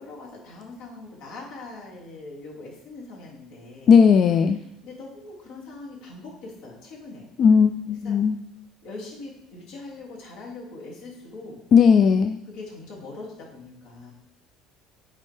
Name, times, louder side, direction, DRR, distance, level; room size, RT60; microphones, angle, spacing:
voice 1, 0.0-3.9 4.8-7.3 7.9-8.2 8.8-11.6 12.5-14.1, left 3 dB, 75° left, -2 dB, 2.2 m, -41 dB
voice 2, 3.9-4.6 7.4-8.4 11.7-12.4, left 6 dB, 45° left, 8 dB, 0.3 m, -16 dB
8.5 x 4.3 x 3.3 m, 0.85 s
cardioid pair, 130°, 0 cm